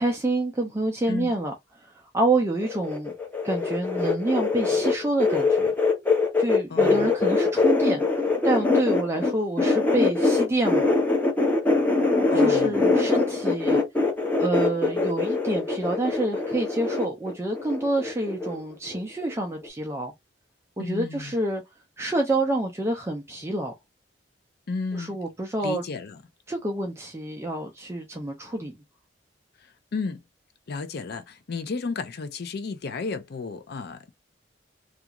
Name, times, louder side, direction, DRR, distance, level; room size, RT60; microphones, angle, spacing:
voice 1, 0.0-1.5 2.1-3.1 3.4-5.7 6.4-8.0 8.4-10.9 12.3-13.8 14.4-20.1 20.8-21.6 22.0-23.7 24.9-25.8 26.5-28.8, right 2 dB, 15° right, 0.4 m, -27 dB
sound 1, 2.6-9.3 9.6-18.6 18.9-19.3 19.6-19.7, left 3 dB, 10° left, 0.8 m, -23 dB
voice 2, 6.7-7.1 12.3-13.0 20.8-21.3 24.7-25.2 25.6-26.2 29.6-30.2 30.7-34.1, left 4 dB, 60° left, 0.5 m, -33 dB
2.4 x 2.3 x 2.8 m
head